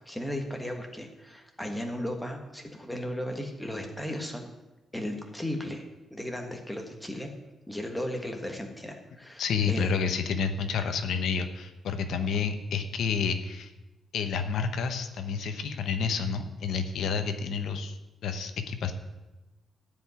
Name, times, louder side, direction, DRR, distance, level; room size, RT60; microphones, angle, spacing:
voice 1, 0.0-4.5 4.9-7.3 7.7-9.9, left 1 dB, 5° left, 3 dB, 1.4 m, -35 dB
voice 2, 9.4-13.7 14.1-18.0 18.2-18.9, left 6 dB, 70° left, 8 dB, 1.0 m, -29 dB
14.0 x 5.3 x 9.5 m, 1.1 s
wide cardioid pair, 175°, 0 cm